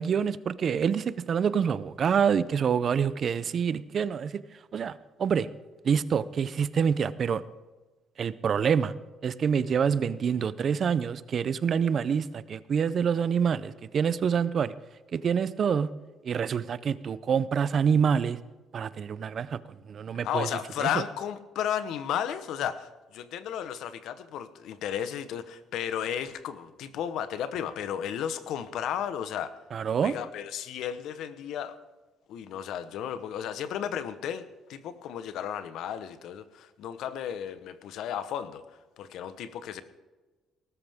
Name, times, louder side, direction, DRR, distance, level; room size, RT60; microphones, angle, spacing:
voice 1, 0.0-4.3 4.7-5.5 5.8-7.4 8.2-8.9 9.2-14.7 15.1-15.9 16.2-18.4 18.7-19.6 19.9-20.5 20.8-21.0 29.7-30.1, right 7 dB, 40° right, 16 dB, 0.5 m, -26 dB
voice 2, 20.2-29.6 30.0-31.8 32.3-34.4 34.7-38.6 39.0-39.8, left 9 dB, 70° left, 12 dB, 1.1 m, -33 dB
19.5 x 13.0 x 3.6 m, 1.2 s
cardioid pair, 140°, 0 cm